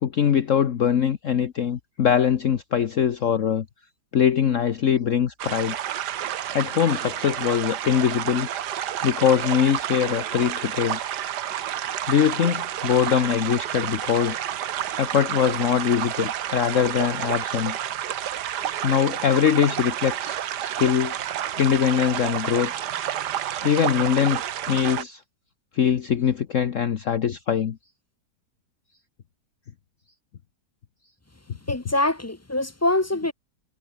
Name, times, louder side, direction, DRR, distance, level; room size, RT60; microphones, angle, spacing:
voice 1, 0.0-3.6 4.1-5.8 6.5-8.5 9.0-11.0 12.1-14.4 15.0-17.8 18.8-21.2 21.6-22.7 23.6-25.2 25.7-27.8, left 8 dB, 55° left, 1.3 m, -22 dB
sound 1, 5.4-25.0, right 11 dB, 85° right, 1.6 m, -30 dB
voice 2, 31.7-33.3, left 2 dB, 20° left, 0.3 m, -24 dB
omnidirectional pair, 1.7 m